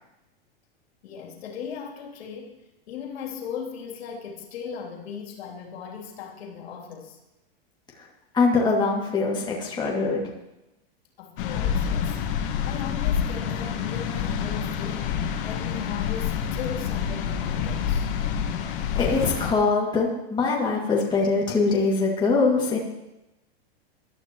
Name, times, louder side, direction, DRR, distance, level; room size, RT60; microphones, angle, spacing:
voice 1, 1.0-2.6 2.9-7.2 11.2-12.2 12.6-18.1, left 7 dB, 75° left, -1 dB, 3.1 m, -38 dB
voice 2, 8.3-10.3 18.9-22.8, left 4 dB, 15° left, -3 dB, 2.3 m, -23 dB
Ocean waves from the sand, 11.4-19.5, left 8 dB, 60° left, 1.7 m, -27 dB
22.0 x 12.0 x 3.1 m, 0.94 s
supercardioid pair, 145°, 31 cm